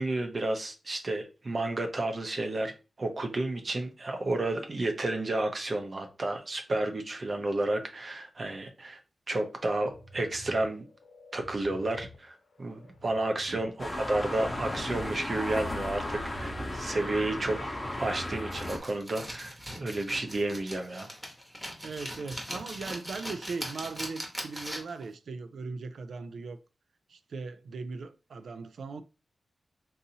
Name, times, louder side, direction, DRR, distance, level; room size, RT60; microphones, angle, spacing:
voice 1, 0.0-2.7 3.0-9.0 9.3-10.9 11.3-17.6 18.0-21.1, right 2 dB, 40° right, 0.7 m, -31 dB
sound 1, 9.6-18.2, equal, 85° left, 0.7 m, -50 dB
sound 2, 13.8-18.8, left 1 dB, 20° left, 0.8 m, -35 dB
sound 3, 18.5-25.0, equal, 10° right, 1.0 m, -40 dB
voice 2, 21.8-26.6 27.1-29.0, right 4 dB, 90° right, 0.3 m, -39 dB
3.9 x 2.7 x 2.7 m
wide cardioid pair, 130°, 0 cm